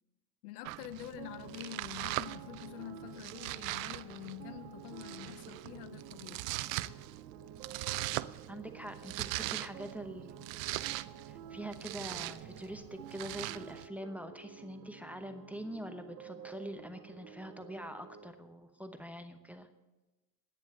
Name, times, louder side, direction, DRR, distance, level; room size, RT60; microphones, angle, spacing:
voice 1, 0.4-6.5, left 14 dB, 70° left, 0.6 m, -47 dB
Domestic sounds home sounds, 0.6-13.9, right 18 dB, 55° right, 0.6 m, -41 dB
sound 1, 1.2-18.3, right 7 dB, 85° right, 1.2 m, -52 dB
voice 2, 8.5-10.5 10.8-19.7, equal, 5° right, 0.9 m, -44 dB
10.5 x 9.4 x 7.6 m
hypercardioid pair, 95°, 47 cm